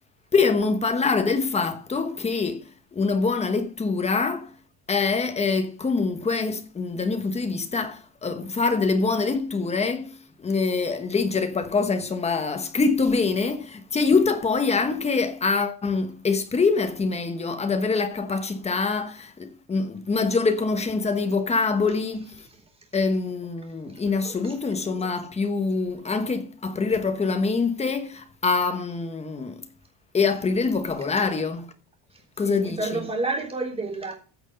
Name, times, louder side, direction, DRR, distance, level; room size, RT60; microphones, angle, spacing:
voice 1, 0.3-2.6 2.9-4.5 4.9-22.5 22.9-29.6 30.1-31.7 32.4-33.0, left 4 dB, 15° left, 1.1 m, -25 dB
voice 2, 32.4-34.1, right 2 dB, 15° right, 3.6 m, -29 dB
15.0 x 6.3 x 5.3 m
cardioid pair, 165°, 44 cm